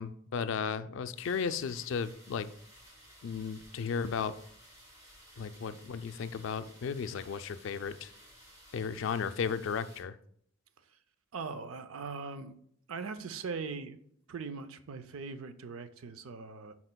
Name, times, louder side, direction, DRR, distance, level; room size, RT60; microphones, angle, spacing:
voice 1, 0.0-2.5 3.2-4.4 5.4-8.1 8.7-10.2, left 6 dB, 65° left, 0.3 m, -35 dB
sound 1, 1.1-10.0, equal, 15° right, 1.7 m, -56 dB
voice 2, 11.3-12.6 12.9-14.0 14.3-16.7, right 4 dB, 90° right, 0.5 m, -40 dB
11.0 x 4.2 x 2.2 m
head